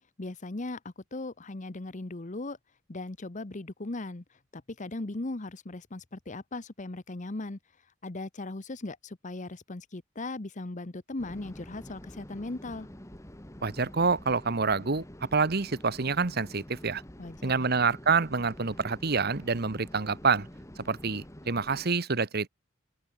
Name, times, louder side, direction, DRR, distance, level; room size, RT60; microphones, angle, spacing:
voice 1, 0.2-2.6 2.9-4.2 4.5-7.6 8.0-12.9 17.2-17.7, left 2 dB, 40° left, 1.0 m, -38 dB
sound 1, 11.2-21.9, equal, 15° left, 2.2 m, -47 dB
voice 2, 13.6-15.0 15.3-17.0 17.4-20.5 20.8-22.5, right 4 dB, 55° right, 1.2 m, -27 dB
open air
head